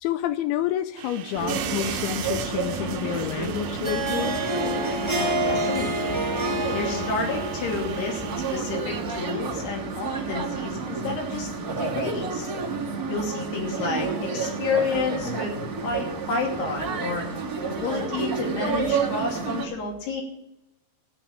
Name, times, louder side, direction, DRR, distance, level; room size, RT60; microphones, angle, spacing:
voice 1, 0.0-4.4, left 12 dB, 85° left, 10 dB, 2.2 m, -29 dB
Bench Saw Crosscutting, 1.0-8.6, right 10 dB, 75° right, 2.7 m, -39 dB
sound 1, 1.3-19.6, right 4 dB, 30° right, 1.9 m, -30 dB
Harp, 3.7-9.1, right 1 dB, 45° right, 0.3 m, -29 dB
voice 2, 5.1-6.2 6.7-8.2 8.5-11.5 11.8-12.5 13.1-15.5 15.8-17.3 17.6-20.2, left 4 dB, 65° left, 0 dB, 4.8 m, -30 dB
14.0 x 6.0 x 8.9 m, 0.90 s
omnidirectional pair, 5.1 m